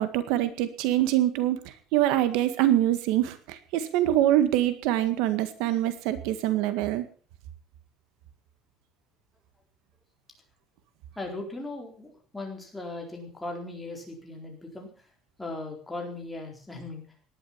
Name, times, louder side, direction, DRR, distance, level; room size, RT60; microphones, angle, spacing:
voice 1, 0.0-1.6 1.9-7.1, right 13 dB, 85° right, 11 dB, 1.8 m, -24 dB
voice 2, 11.2-14.9 15.4-17.0, left 2 dB, 5° left, 1 dB, 4.2 m, -38 dB
18.0 x 11.5 x 5.9 m, 0.40 s
cardioid pair, 170°, 0 cm